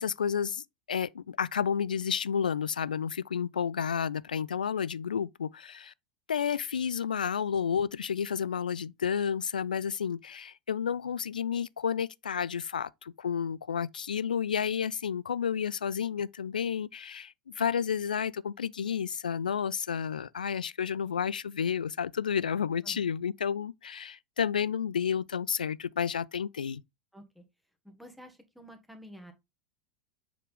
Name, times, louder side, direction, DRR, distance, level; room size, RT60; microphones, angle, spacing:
voice 1, 0.0-5.9 6.3-26.8, left 7 dB, 80° left, 0.3 m, -31 dB
voice 2, 27.1-27.4 27.8-29.3, equal, ahead, 1.5 m, -50 dB
7.5 x 4.1 x 3.5 m
figure-of-eight pair, 85°, 4 cm